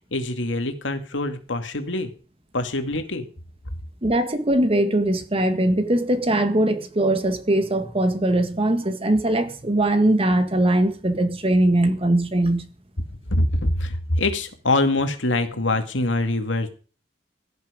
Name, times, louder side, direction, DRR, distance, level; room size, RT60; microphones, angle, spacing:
voice 1, 0.1-2.1 2.5-3.3 13.3-16.7, left 2 dB, 85° left, 2.5 m, -24 dB
voice 2, 4.0-12.7, right 1 dB, 30° right, 1.8 m, -21 dB
17.0 x 11.0 x 5.2 m
head